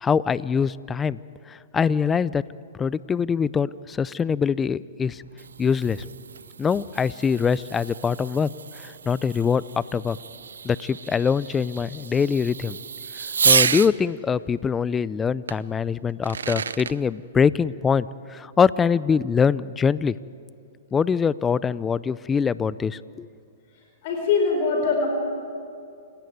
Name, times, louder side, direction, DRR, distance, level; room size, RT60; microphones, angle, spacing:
voice 1, 0.0-1.2 1.5-2.4 2.7-5.2 5.6-6.0 6.6-8.5 8.8-9.6 9.9-10.2 10.6-12.8 13.4-20.1 20.9-23.3, left 6 dB, 15° left, 19 dB, 0.5 m, -23 dB
Fireworks, 5.1-13.9 15.5-15.6 16.1-17.0, right 6 dB, 85° right, 0.7 m, -29 dB
voice 2, 24.0-25.1, left 4 dB, 50° left, 2 dB, 4.5 m, -22 dB
28.5 x 17.5 x 9.5 m, 2.4 s
hypercardioid pair, 130°, 0 cm